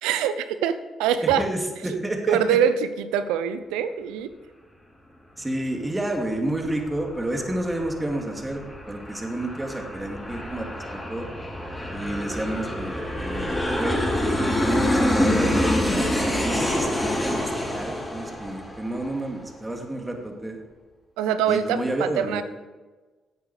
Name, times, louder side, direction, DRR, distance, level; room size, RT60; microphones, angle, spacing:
voice 1, 0.0-1.4 2.3-4.3 15.9-16.6 21.2-22.4, right 8 dB, 85° right, 12 dB, 0.6 m, -24 dB
voice 2, 1.2-2.6 5.4-10.7 10.9-11.3 11.9-16.1 16.3-20.6 21.5-22.4, right 1 dB, 15° right, 2 dB, 2.3 m, -30 dB
Aircraft, 6.2-19.4, left 1 dB, 10° left, 4.1 m, -27 dB
11.5 x 8.1 x 4.9 m, 1.3 s
supercardioid pair, 55°, 0 cm